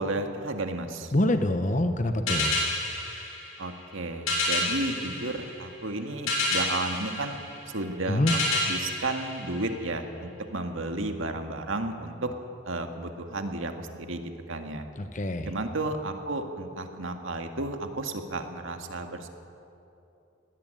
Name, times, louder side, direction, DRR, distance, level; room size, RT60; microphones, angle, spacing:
voice 1, 0.0-1.1 3.6-7.4 7.7-12.3 12.6-14.9 15.5-19.3, right 2 dB, 80° right, 5 dB, 2.0 m, -33 dB
voice 2, 1.1-2.6 8.1-8.3 15.0-15.5, left 1 dB, 35° left, 8 dB, 1.0 m, -25 dB
sound 1, 2.3-10.1, left 2 dB, 85° left, 7.0 m, -30 dB
20.0 x 18.0 x 9.1 m, 2.8 s
head